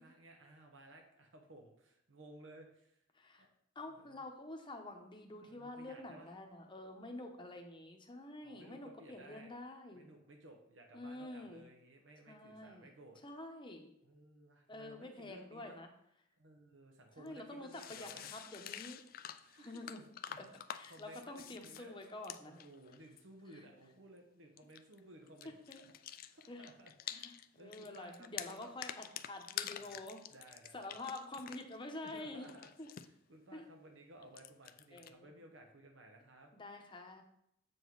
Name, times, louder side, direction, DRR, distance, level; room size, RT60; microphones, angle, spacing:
voice 1, 0.0-3.0 3.4-3.5 3.9-4.2 5.4-6.3 8.4-9.5 9.9-13.2 14.0-15.8 16.4-18.3 19.4-21.9 22.4-28.8 29.8-30.9 32.0-36.5, right 1 dB, 80° right, 3 dB, 1.0 m, -58 dB
voice 2, 3.1-3.5 3.7-10.1 10.9-11.6 12.3-12.9 13.2-13.9 14.7-15.9 17.2-19.0 19.6-20.0 20.4-22.6 23.5-23.6 25.7-25.8 26.5-26.7 27.1-30.2 30.7-32.5 32.8-32.9 33.5-33.7 34.9-35.4 36.5-37.2, left 2 dB, 25° left, 4 dB, 0.9 m, -48 dB
sound 1, 17.3-17.4 17.7-23.2 24.6-25.0 25.3-27.5 27.7-31.8 32.1-33.1 34.2-35.1, left 10 dB, 50° left, 0.3 m, -48 dB
7.6 x 5.2 x 3.9 m, 0.74 s
head